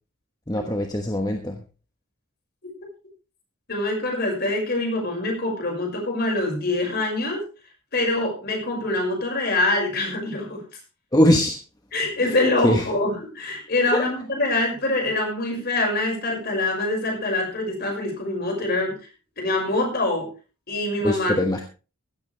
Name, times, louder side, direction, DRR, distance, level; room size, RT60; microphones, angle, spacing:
voice 1, 0.5-1.6 11.1-11.6 12.2-12.9 13.8-14.1 21.0-21.6, left 1 dB, 20° left, 4 dB, 1.2 m, -22 dB
voice 2, 3.7-7.4 7.9-10.6 11.9-18.9 19.4-20.3 20.7-21.5, left 2 dB, 45° left, 1 dB, 5.8 m, -24 dB
16.0 x 13.5 x 3.4 m, 0.33 s
head